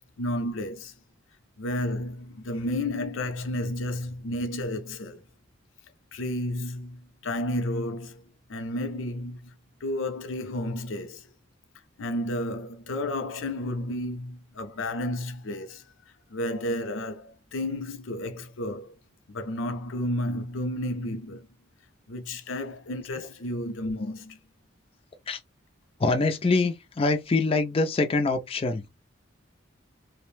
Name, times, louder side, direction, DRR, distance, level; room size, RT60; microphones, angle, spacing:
voice 1, 0.2-0.9 1.6-5.2 6.1-8.2 8.5-9.5 9.8-11.2 12.0-15.8 16.3-18.9 19.3-21.5 22.1-24.4, left 1 dB, 85° left, 0.6 m, -32 dB
voice 2, 26.0-28.9, left 3 dB, 30° left, 0.4 m, -24 dB
2.5 x 2.0 x 3.1 m
head